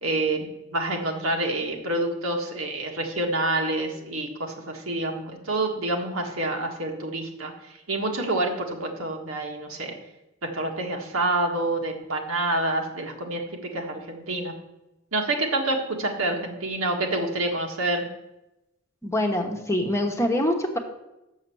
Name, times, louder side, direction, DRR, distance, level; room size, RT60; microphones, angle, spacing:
voice 1, 0.0-10.0 10.4-13.4 13.7-14.5 15.1-18.0, right 2 dB, 80° right, 2 dB, 1.6 m, -27 dB
voice 2, 19.0-20.8, left 1 dB, 15° left, 2 dB, 1.0 m, -24 dB
6.7 x 6.4 x 7.6 m, 0.93 s
head